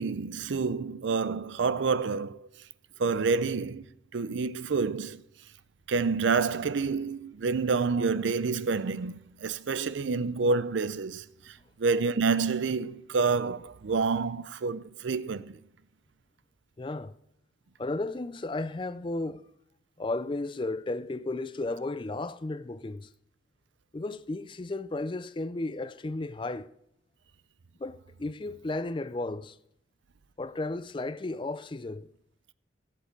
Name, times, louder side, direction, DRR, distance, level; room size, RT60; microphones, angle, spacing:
voice 1, 0.0-2.5 3.0-3.9 4.1-5.2 5.9-15.6, right 4 dB, 75° right, 0.5 m, -28 dB
voice 2, 16.8-17.2 17.8-19.4 20.0-23.1 23.9-26.7 27.8-29.6 30.4-32.1, left 2 dB, 25° left, 0.4 m, -34 dB
16.0 x 7.5 x 5.2 m
head